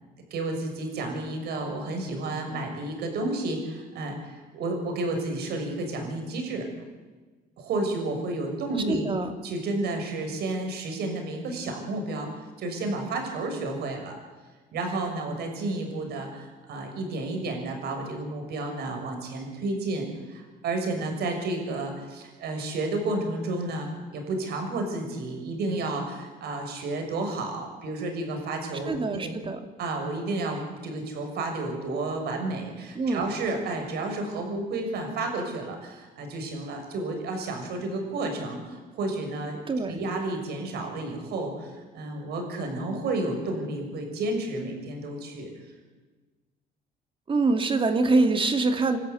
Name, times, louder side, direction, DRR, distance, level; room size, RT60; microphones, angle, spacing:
voice 1, 0.3-6.6 7.6-9.1 9.4-14.2 14.7-29.4 29.8-39.6 39.9-45.5, right 2 dB, 70° right, 3 dB, 6.6 m, -31 dB
voice 2, 8.9-9.3 28.9-29.6 33.0-33.2 39.7-40.0 47.3-49.0, right 3 dB, 30° right, 7 dB, 2.5 m, -24 dB
28.0 x 13.5 x 10.0 m, 1.3 s
cardioid pair, 120°, 17 cm